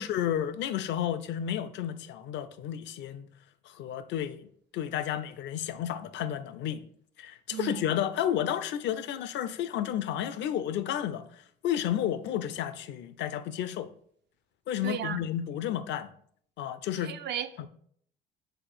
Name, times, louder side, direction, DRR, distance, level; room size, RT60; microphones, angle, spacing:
voice 1, 0.0-3.3 3.6-6.9 7.2-13.9 14.7-16.1 16.6-17.1 17.6-17.7, left 10 dB, 60° left, 0.4 m, -32 dB
voice 2, 7.5-7.9 14.8-15.2 17.0-17.5, right 9 dB, 55° right, 0.4 m, -35 dB
4.1 x 2.4 x 4.7 m
supercardioid pair, 70°, 21 cm